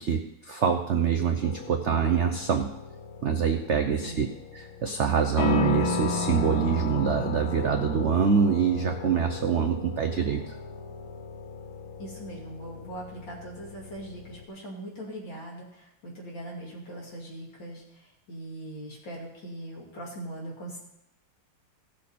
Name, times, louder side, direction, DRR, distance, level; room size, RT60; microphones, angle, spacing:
voice 1, 0.0-2.7 3.2-4.3 4.5-10.6, right 6 dB, 75° right, 5 dB, 0.6 m, -25 dB
sound 1, 1.4-14.4, left 4 dB, 90° left, 1.7 m, -35 dB
voice 2, 12.0-20.8, right 1 dB, 70° left, -3 dB, 3.2 m, -41 dB
16.0 x 6.8 x 4.2 m, 0.81 s
omnidirectional pair, 2.1 m